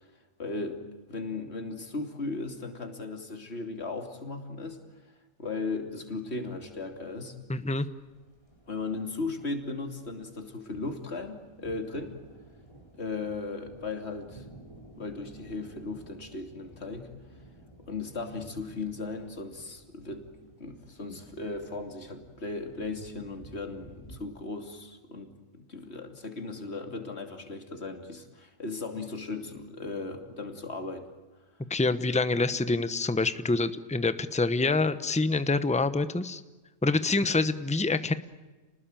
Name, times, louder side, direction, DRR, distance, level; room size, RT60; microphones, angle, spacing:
voice 1, 0.4-0.8 1.1-4.8 5.4-7.3 8.7-12.2 12.9-14.4 15.0-17.1 17.8-20.3 20.6-31.1, left 3 dB, 50° left, 5 dB, 3.1 m, -37 dB
sound 1, 6.2-24.2, right 1 dB, 25° left, 4.6 m, -53 dB
voice 2, 7.5-7.9 31.7-36.4 36.8-38.1, left 3 dB, 5° left, 12 dB, 0.9 m, -26 dB
30.0 x 20.0 x 9.1 m, 1.2 s
omnidirectional pair, 1.4 m